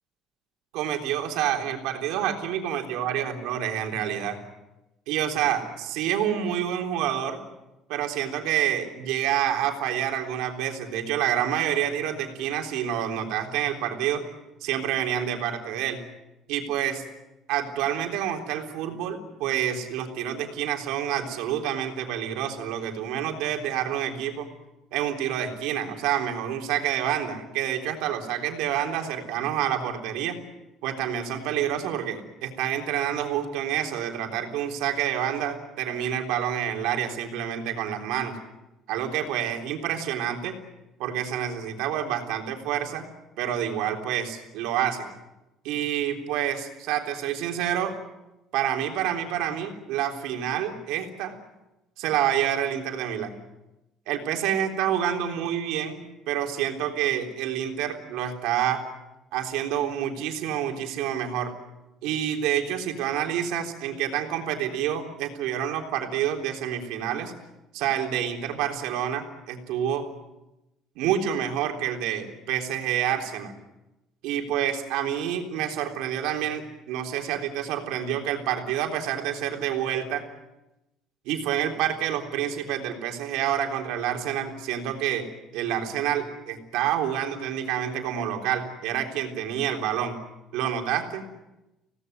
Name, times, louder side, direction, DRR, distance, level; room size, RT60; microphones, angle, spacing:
voice 1, 0.7-4.4 5.1-7.4 7.9-14.2 14.6-16.0 16.5-17.0 17.5-24.5 24.9-30.4 30.8-38.4 38.9-40.6 41.0-43.0 43.4-45.1 45.6-47.9 48.5-51.3 52.0-53.3 54.1-56.0 56.3-58.8 59.3-61.5 62.0-67.3 67.7-70.1 71.0-73.5 74.2-80.2 81.3-85.3 85.5-90.2 90.5-91.2, right 10 dB, 85° right, 3 dB, 3.6 m, -28 dB
26.0 x 18.0 x 9.3 m, 0.99 s
cardioid pair, 160°, 0 cm